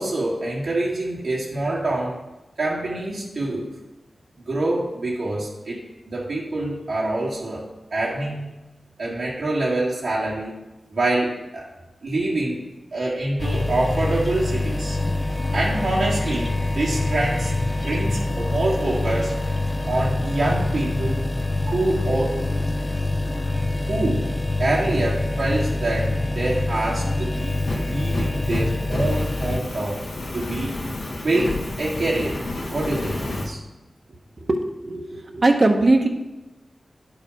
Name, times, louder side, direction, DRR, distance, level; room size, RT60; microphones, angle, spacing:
voice 1, 0.0-2.2 2.6-3.7 4.5-5.8 6.1-8.5 9.0-10.6 10.9-11.7 12.0-12.6 12.9-15.0 15.5-17.5 17.8-19.3 19.9-21.2 21.7-22.4 23.8-24.3 24.6-30.0 30.3-30.8 31.2-32.4 32.7-33.6, right 2 dB, 85° right, -6 dB, 1.9 m, -25 dB
sound 1, 13.4-29.6, left 2 dB, 25° left, 0.5 m, -25 dB
Fire, 27.4-33.5, left 2 dB, 80° left, 1.6 m, -31 dB
voice 2, 34.5-36.1, right 2 dB, 55° right, 4 dB, 1.0 m, -19 dB
10.5 x 4.8 x 4.9 m, 1.0 s
cardioid pair, 45°, 0 cm